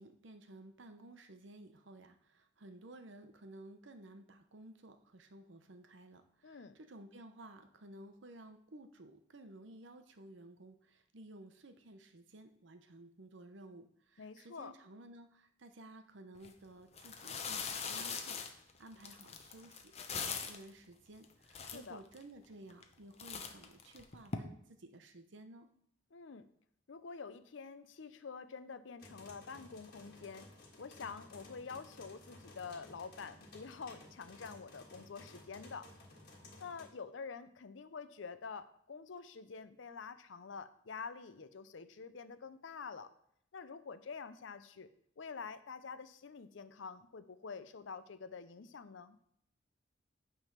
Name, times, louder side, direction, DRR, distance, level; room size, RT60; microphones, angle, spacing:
voice 1, 0.0-18.4 18.8-25.7, right 1 dB, 70° right, 8 dB, 0.8 m, -55 dB
voice 2, 6.4-6.8 14.2-14.7 21.6-22.0 26.1-26.5 26.9-30.5 30.8-35.9 36.6-43.1 43.5-44.9 45.2-49.2, left 5 dB, 75° left, 12 dB, 0.6 m, -47 dB
sound 1, 16.4-16.5 16.9-20.7 21.2-21.3 21.5-22.2 22.7-22.9 23.2-24.4, left 5 dB, 35° left, 0.7 m, -41 dB
sound 2, 29.0-36.9, left 2 dB, 50° left, 1.6 m, -56 dB
9.0 x 3.5 x 5.7 m, 0.70 s
head